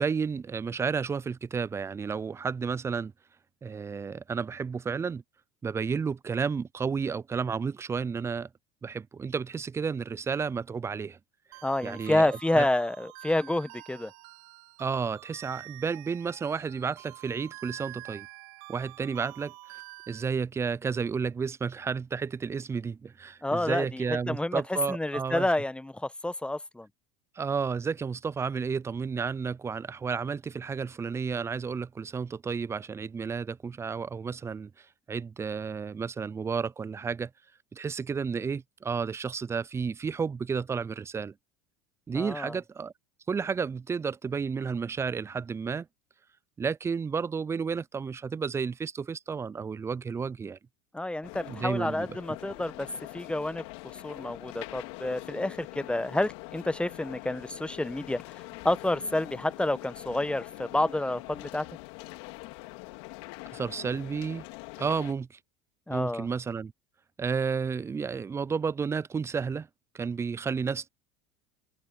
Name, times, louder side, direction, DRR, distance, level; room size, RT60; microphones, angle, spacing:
voice 1, 0.0-3.1 3.6-5.2 5.6-8.5 8.8-11.2 11.8-12.7 14.8-18.3 18.7-25.5 27.4-37.3 37.7-41.3 42.1-42.9 43.3-45.9 46.6-50.6 51.5-52.1 63.5-64.4 64.8-65.4 65.9-66.7 67.2-69.7 69.9-70.9, right 5 dB, 20° right, 0.4 m, -32 dB
sound 1, 11.5-20.2, right 25 dB, 70° right, 2.2 m, -47 dB
voice 2, 11.6-14.1 23.4-24.6 24.9-26.9 42.1-42.6 50.9-52.9 53.1-53.6 54.0-61.7 65.9-66.3, left 1 dB, 5° left, 1.1 m, -29 dB
sound 2, 51.2-65.1, left 26 dB, 70° left, 3.1 m, -44 dB
hypercardioid pair, 85°, 14 cm